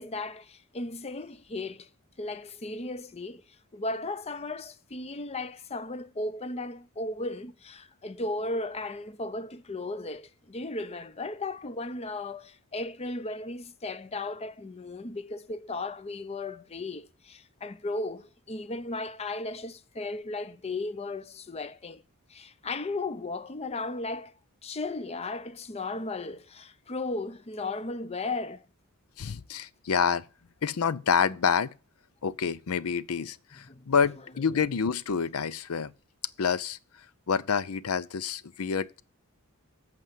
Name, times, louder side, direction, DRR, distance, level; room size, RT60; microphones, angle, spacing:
voice 1, 0.0-1.9 2.2-3.5 3.7-22.0 22.3-24.3 24.6-28.6 33.6-33.9, left 2 dB, 30° left, 0.6 m, -35 dB
voice 2, 29.2-30.2 30.6-31.7 32.2-35.9 36.4-36.8 37.3-39.0, left 6 dB, 85° left, 0.6 m, -28 dB
8.4 x 5.2 x 7.5 m
head